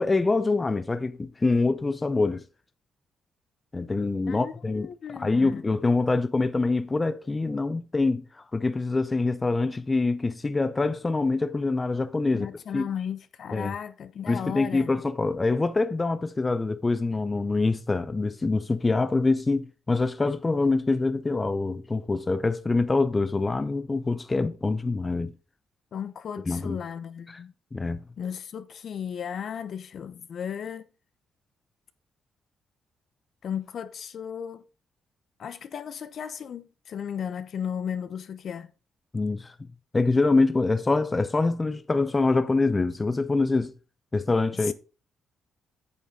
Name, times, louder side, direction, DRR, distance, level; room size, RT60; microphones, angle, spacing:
voice 1, 0.0-2.4 3.7-12.8 13.5-13.7 14.3-25.3 26.5-26.8 27.3-27.4 27.7-28.0 39.1-39.5 39.9-43.7 44.1-44.7, left 3 dB, 25° left, 0.6 m, -25 dB
voice 2, 4.3-5.6 12.3-14.9 25.9-27.5 28.2-30.8 33.4-34.6 35.4-38.7 44.7-44.8, left 8 dB, 60° left, 0.8 m, -35 dB
8.5 x 7.1 x 3.7 m
cardioid pair, 90°, 0 cm